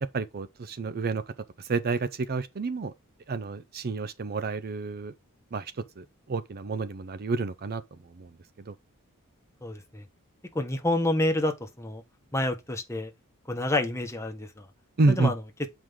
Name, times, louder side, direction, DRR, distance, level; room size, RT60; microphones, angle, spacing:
voice 1, 0.1-1.2 1.6-2.9 3.3-5.1 5.5-8.3 8.6-8.7 15.0-15.3, right 3 dB, 45° right, 0.5 m, -29 dB
voice 2, 9.6-10.0 10.5-12.0 12.3-13.1 13.5-14.6 15.1-15.4, left 1 dB, 15° left, 1.3 m, -28 dB
7.5 x 4.9 x 3.6 m
head